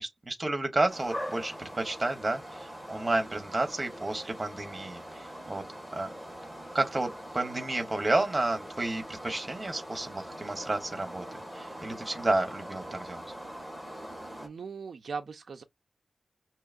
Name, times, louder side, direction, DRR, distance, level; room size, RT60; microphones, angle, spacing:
voice 1, 0.0-5.6 5.9-6.1 6.7-11.2 11.5-13.2, right 2 dB, 15° right, 0.9 m, -31 dB
sound 1, 0.9-14.5, equal, 10° left, 1.7 m, -42 dB
voice 2, 14.4-15.6, right 5 dB, 55° right, 0.4 m, -39 dB
5.5 x 2.8 x 2.4 m
wide cardioid pair, 175°, 0 cm